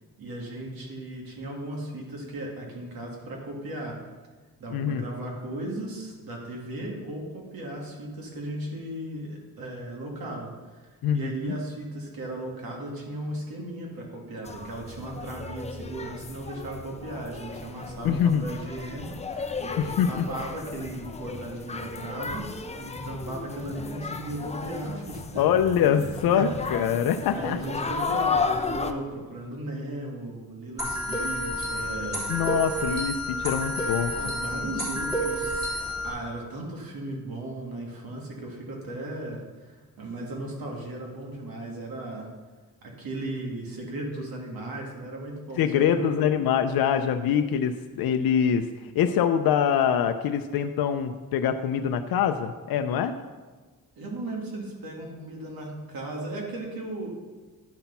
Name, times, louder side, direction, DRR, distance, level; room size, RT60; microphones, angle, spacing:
voice 1, 0.2-4.0 4.6-19.7 20.1-22.5 22.8-25.5 25.8-26.7 27.2-32.3 34.1-42.3 43.0-46.1 54.0-57.1, right 1 dB, 80° right, -1 dB, 2.3 m, -36 dB
voice 2, 4.7-5.1 11.0-11.5 18.0-18.4 19.8-20.2 25.4-27.6 32.3-34.1 45.6-53.1, left 8 dB, 85° left, 7 dB, 0.6 m, -24 dB
sound 1, 14.4-28.9, left 4 dB, 20° left, 0.6 m, -34 dB
sound 2, 30.8-36.1, equal, 10° right, 3.2 m, -30 dB
10.5 x 5.9 x 5.6 m, 1.3 s
cardioid pair, 140°, 35 cm